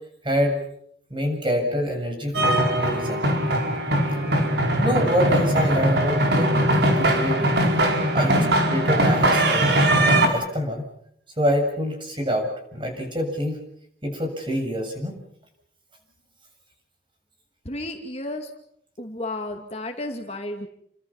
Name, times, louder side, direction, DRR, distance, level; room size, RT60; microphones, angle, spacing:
voice 1, 0.2-0.6 1.1-3.3 4.8-6.5 6.8-7.5 8.1-10.9 11.4-13.6 14.0-15.2, equal, 25° right, 3 dB, 7.5 m, -26 dB
sound 1, 2.3-10.3, right 1 dB, 65° right, 4.9 m, -20 dB
voice 2, 17.6-18.5 19.0-20.7, left 1 dB, 35° left, 4 dB, 2.3 m, -32 dB
29.5 x 25.0 x 5.8 m, 0.69 s
head